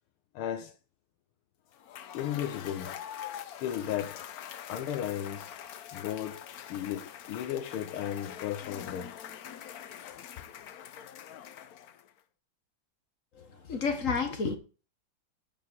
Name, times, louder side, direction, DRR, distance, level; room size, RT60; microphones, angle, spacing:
voice 1, 0.3-0.8 2.1-3.0 3.4-4.2 4.7-5.6 5.9-9.2 10.0-10.3, left 10 dB, 80° left, 1.6 m, -35 dB
Cheering / Applause / Crowd, 1.7-12.2, left 10 dB, 65° left, 0.9 m, -44 dB
voice 2, 13.3-14.6, left 5 dB, 40° left, 1.6 m, -31 dB
9.7 x 5.2 x 7.6 m
omnidirectional pair, 2.4 m